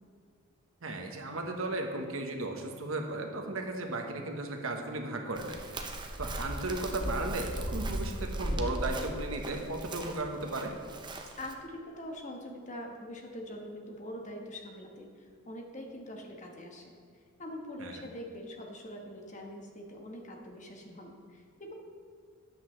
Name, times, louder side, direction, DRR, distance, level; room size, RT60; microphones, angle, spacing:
voice 1, 0.8-5.6 6.2-10.7 17.8-18.1, right 2 dB, 75° right, 3 dB, 1.2 m, -35 dB
Chirp tweet, 5.4-11.5, right 1 dB, 20° right, 0.8 m, -37 dB
voice 2, 11.4-16.9 17.4-21.7, left 1 dB, 35° left, 1 dB, 1.4 m, -44 dB
13.5 x 9.9 x 3.3 m, 2.1 s
head